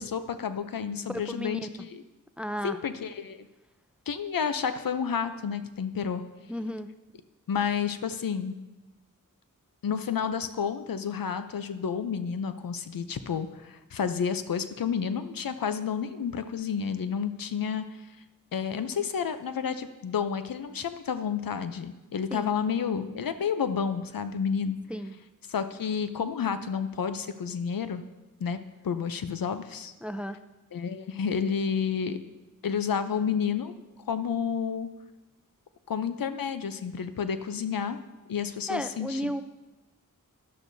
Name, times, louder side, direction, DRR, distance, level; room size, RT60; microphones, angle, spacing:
voice 1, 0.0-2.0 2.6-3.5 4.1-6.2 7.5-8.5 9.8-17.8 18.5-24.8 25.5-28.0 28.4-28.6 28.8-29.9 30.7-32.2 32.6-33.7 34.1-34.9 35.9-38.0 38.3-39.3, left 7 dB, 85° left, 10 dB, 0.6 m, -30 dB
voice 2, 1.1-1.7 2.4-2.8 6.5-6.9 22.3-22.5 24.9-25.1 30.0-30.4 38.7-39.4, equal, 5° right, 10 dB, 0.5 m, -33 dB
12.0 x 10.5 x 2.7 m, 1.1 s
wide cardioid pair, 55°, 34 cm